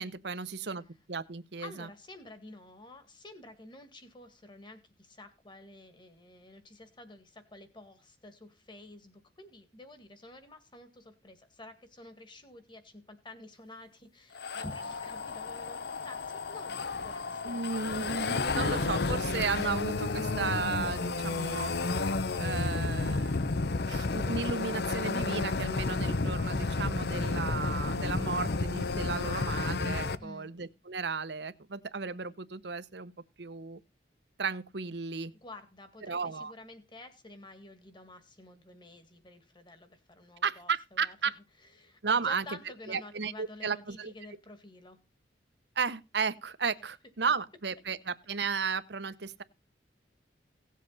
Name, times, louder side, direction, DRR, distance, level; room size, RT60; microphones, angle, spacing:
voice 1, 0.0-1.9 17.4-21.7 22.4-23.3 23.9-33.1 33.4-33.8 34.4-35.3 36.1-36.5 40.4-41.3 42.0-42.4 42.9-44.1 45.8-49.4, right 5 dB, 70° right, 0.9 m, -34 dB
voice 2, 1.6-17.6 30.2-30.5 35.4-41.4 41.6-45.0, left 2 dB, 25° left, 2.0 m, -50 dB
sound 1, 14.4-30.2, left 3 dB, 60° left, 0.8 m, -32 dB
17.5 x 7.5 x 4.1 m
head